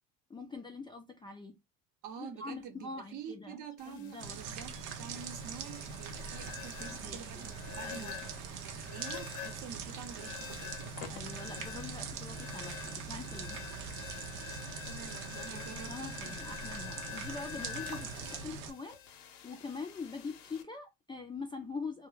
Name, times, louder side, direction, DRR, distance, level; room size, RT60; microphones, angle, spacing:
voice 1, 0.3-1.6 2.2-4.4 6.8-7.2 7.8-8.2 11.1-13.6 15.5-22.1, left 4 dB, 15° left, 0.3 m, -44 dB
voice 2, 2.0-8.2 8.6-11.0 14.9-16.1 16.7-16.8, right 7 dB, 55° right, 0.7 m, -47 dB
sound 1, 3.8-20.6, left 11 dB, 80° left, 0.7 m, -47 dB
sound 2, 4.2-18.7, right 6 dB, 85° right, 0.6 m, -42 dB
2.2 x 2.1 x 3.1 m
supercardioid pair, 90°, 38 cm